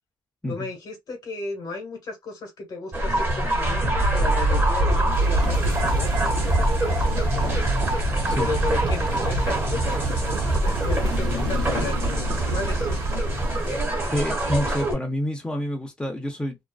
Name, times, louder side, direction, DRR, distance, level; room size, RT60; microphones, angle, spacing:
voice 1, 0.5-7.7 8.4-13.0, left 3 dB, 55° left, 1.1 m, -35 dB
sound 1, 2.9-14.9, right 1 dB, 30° right, 1.3 m, -25 dB
sound 2, 3.5-14.2, right 2 dB, 70° right, 0.5 m, -27 dB
sound 3, 10.8-13.9, left 8 dB, 80° left, 0.6 m, -38 dB
voice 2, 14.1-16.6, equal, 10° left, 0.7 m, -28 dB
2.5 x 2.2 x 2.2 m
cardioid pair, 90°, 8 cm